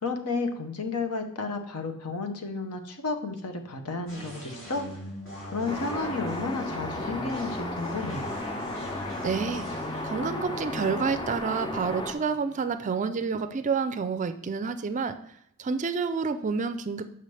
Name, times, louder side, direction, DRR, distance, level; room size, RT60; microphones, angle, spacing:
voice 1, 0.0-4.9 5.4-8.3, left 3 dB, 85° left, 6 dB, 0.9 m, -32 dB
sound 1, 4.1-13.5, right 1 dB, 60° left, 2.9 m, -41 dB
sound 2, 5.7-12.1, left 2 dB, 20° left, 0.5 m, -34 dB
voice 2, 9.2-9.7 10.0-15.2 15.6-17.1, right 5 dB, 35° right, 10 dB, 0.4 m, -29 dB
6.8 x 5.6 x 3.3 m, 0.72 s
head